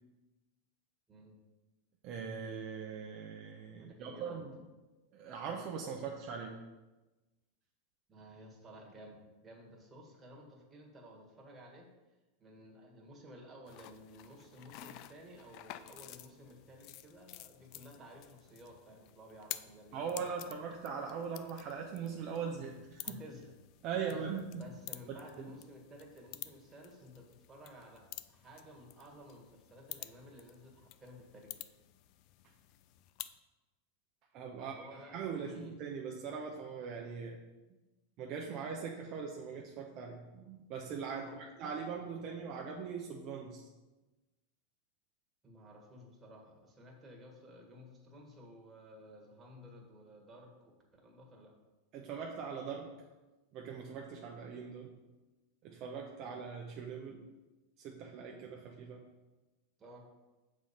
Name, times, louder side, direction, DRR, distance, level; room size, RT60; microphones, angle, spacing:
voice 1, 2.0-4.5 5.1-6.5 19.9-23.2 23.8-24.7 25.4-25.5 34.3-37.4 38.2-43.6 51.9-52.9 53.5-54.9 55.6-57.2 57.8-59.0, right 6 dB, 45° right, 0 dB, 0.7 m, -41 dB
voice 2, 3.8-4.4 8.1-11.9 12.4-20.3 23.0-23.5 24.1-24.2 24.5-31.6 34.6-35.8 41.1-41.5 45.4-51.5 56.2-56.4 59.8-60.0, equal, 20° right, 0 dB, 1.6 m, -54 dB
sound 1, 13.7-33.4, left 14 dB, 50° left, 0.3 m, -51 dB
6.2 x 4.3 x 5.1 m, 1.1 s
supercardioid pair, 125°, 0 cm